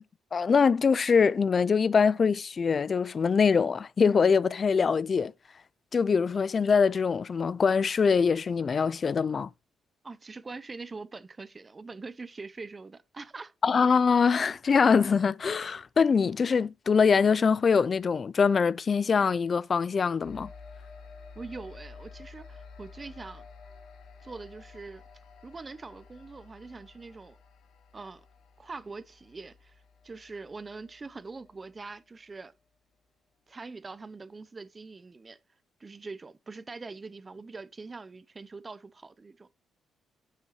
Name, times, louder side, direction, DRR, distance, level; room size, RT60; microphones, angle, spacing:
voice 1, 0.3-5.3 5.9-9.5 13.6-20.5, left 5 dB, 40° left, 0.3 m, -23 dB
voice 2, 10.0-13.5 21.4-23.5 24.2-25.0 25.4-27.4 27.9-28.2 28.6-32.5 33.5-35.4 35.8-39.5, right 3 dB, 30° right, 0.6 m, -43 dB
sound 1, 20.2-32.0, left 4 dB, 70° left, 1.9 m, -51 dB
9.3 x 6.2 x 3.0 m
cardioid pair, 90°, 0 cm